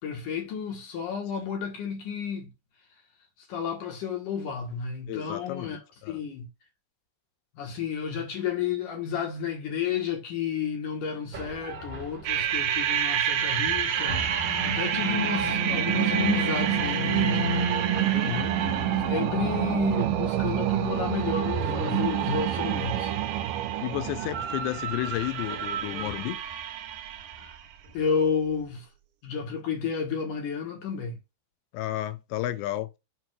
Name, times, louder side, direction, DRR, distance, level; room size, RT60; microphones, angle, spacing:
voice 1, 0.0-2.5 3.5-5.8 6.1-6.5 7.6-17.7 18.0-18.1 18.6-23.2 27.4-27.5 27.9-28.9 29.2-31.2, left 6 dB, 55° left, 2.6 m, -31 dB
voice 2, 5.1-5.7 6.0-6.2 18.1-18.6 23.8-26.4 31.7-32.9, left 15 dB, 85° left, 2.9 m, -32 dB
sound 1, 11.3-23.1 24.0-26.6, equal, 40° right, 2.1 m, -35 dB
sound 2, 12.3-27.6, right 11 dB, 80° right, 2.0 m, -28 dB
7.8 x 2.9 x 6.1 m
omnidirectional pair, 5.1 m